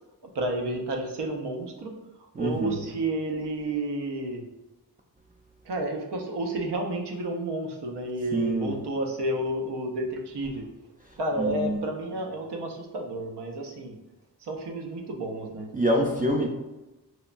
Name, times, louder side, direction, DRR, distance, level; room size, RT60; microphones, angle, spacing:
voice 1, 0.2-4.4 5.6-10.7 11.2-14.0 14.4-15.7, right 1 dB, 85° right, 2 dB, 0.6 m, -31 dB
voice 2, 2.4-2.9 8.3-8.7 11.4-11.8 15.7-16.5, right 1 dB, 25° right, -1 dB, 0.3 m, -26 dB
3.0 x 2.1 x 2.4 m, 1.0 s
wide cardioid pair, 50°, 40 cm